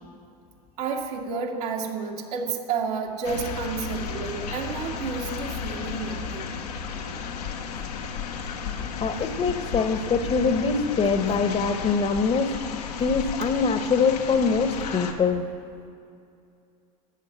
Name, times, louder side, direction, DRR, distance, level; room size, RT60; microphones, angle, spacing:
voice 1, 0.8-6.6, right 5 dB, 75° right, 0 dB, 2.1 m, -31 dB
sound 1, 3.2-15.1, left 6 dB, 85° left, 1.5 m, -33 dB
voice 2, 9.0-12.6 13.0-15.5, left 5 dB, 30° left, 9 dB, 1.1 m, -23 dB
13.5 x 9.2 x 7.7 m, 2.5 s
hypercardioid pair, 95°, 20 cm